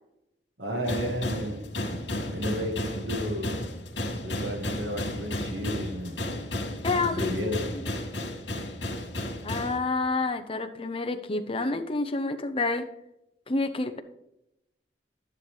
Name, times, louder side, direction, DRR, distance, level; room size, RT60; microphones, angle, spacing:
voice 1, 0.6-3.6 4.2-6.2 7.0-7.6, equal, 65° right, 3 dB, 1.9 m, -33 dB
sound 1, 0.8-9.8, left 1 dB, 85° left, 2.2 m, -33 dB
voice 2, 6.8-7.5 9.4-12.9 13.5-14.0, left 3 dB, 30° left, 7 dB, 0.7 m, -28 dB
11.5 x 9.8 x 3.3 m, 0.85 s
head